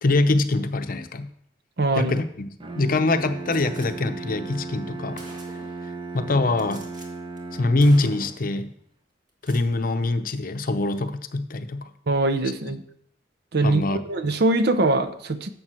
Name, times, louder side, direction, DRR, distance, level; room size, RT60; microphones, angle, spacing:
voice 1, 0.0-1.3 2.0-2.5 2.8-5.2 6.1-6.8 7.5-8.7 9.4-11.9 12.6-12.7 13.6-14.0, left 2 dB, 50° left, 9 dB, 0.7 m, -23 dB
voice 2, 1.8-2.1 12.1-12.8 13.5-15.5, right 2 dB, 60° right, 9 dB, 0.7 m, -22 dB
Bowed string instrument, 2.6-8.5, right 3 dB, 30° right, 0.8 m, -36 dB
Gunshot gunfire, 3.5-3.9 4.7-4.8 5.2-5.8 6.6-7.1 7.4-7.5 7.8-8.5 9.3-9.7, right 1 dB, 45° right, 1.9 m, -45 dB
11.0 x 7.1 x 4.4 m, 0.69 s
head